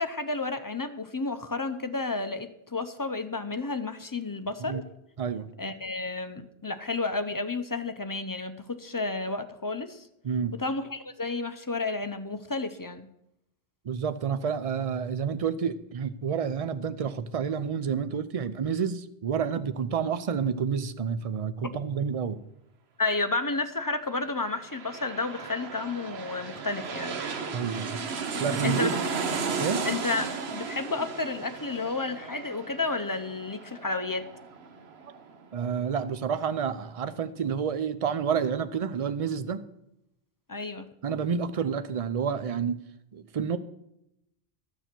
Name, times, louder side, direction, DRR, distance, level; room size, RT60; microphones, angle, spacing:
voice 1, 0.0-4.8 5.6-10.1 10.6-13.1 23.0-27.2 27.9-28.0 28.6-28.9 29.8-34.2 40.5-40.9, left 3 dB, 25° left, 9 dB, 0.5 m, -31 dB
voice 2, 5.2-5.5 10.2-10.5 13.8-22.4 27.5-28.0 28.4-28.9 29.6-29.8 35.5-39.6 41.0-42.8 43.1-43.6, right 7 dB, 40° right, 12 dB, 0.6 m, -29 dB
sound 1, 24.3-35.7 36.0-36.1, right 5 dB, 85° right, 1.2 m, -35 dB
13.0 x 6.9 x 6.0 m, 0.82 s
omnidirectional pair, 1.0 m